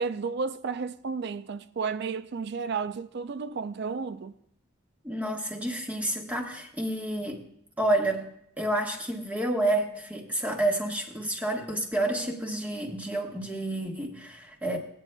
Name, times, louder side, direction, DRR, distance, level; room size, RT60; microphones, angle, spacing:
voice 1, 0.0-4.4, right 5 dB, 50° right, 0.4 m, -32 dB
voice 2, 5.0-7.5 7.8-8.3 8.6-14.8, right 1 dB, 5° right, 1.2 m, -29 dB
18.0 x 9.0 x 2.2 m
head